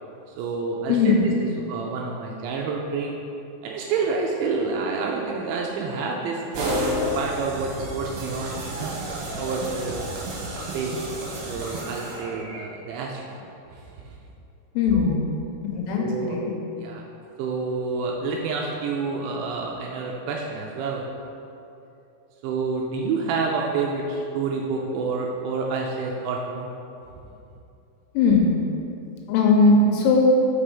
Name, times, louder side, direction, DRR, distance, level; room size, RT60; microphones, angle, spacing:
voice 1, 0.4-3.2 3.6-9.0 9.4-9.9 10.7-10.9 11.5-13.8 14.9-15.2 16.0-16.4 16.8-17.0 17.4-21.0 22.4-26.7 30.2-30.3, right 4 dB, 85° right, -1 dB, 2.7 m, -28 dB
voice 2, 0.9-1.3 14.8-15.3 15.6-16.5 28.1-28.6 29.3-30.3, left 3 dB, 85° left, -1 dB, 3.2 m, -19 dB
sound 1, 6.5-12.6, equal, 70° right, 2.6 m, -31 dB
6.0 x 5.6 x 5.0 m, 2.8 s
omnidirectional pair, 5.8 m